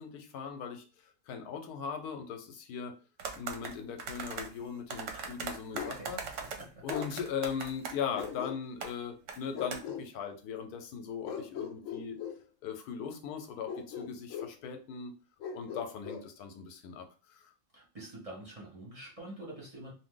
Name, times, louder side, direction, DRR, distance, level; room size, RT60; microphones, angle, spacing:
voice 1, 0.0-2.9 3.3-6.2 6.8-12.2 12.6-15.1 15.5-17.5, left 7 dB, 85° left, 6 dB, 1.2 m, -39 dB
sound 1, 3.2-4.5 4.9-8.3 8.8-8.9 9.3-9.4 9.7-9.8, right 5 dB, 65° right, 0.9 m, -40 dB
Bark, 5.7-6.0 6.9-7.1 8.1-8.9 9.5-10.1 11.2-12.4 13.7-14.6 15.4-16.3, left 7 dB, 70° left, 0.9 m, -39 dB
voice 2, 5.7-6.1 6.4-6.8 17.7-19.9, right 1 dB, 30° right, -4 dB, 0.9 m, -47 dB
2.7 x 2.5 x 3.7 m, 0.35 s
omnidirectional pair, 1.6 m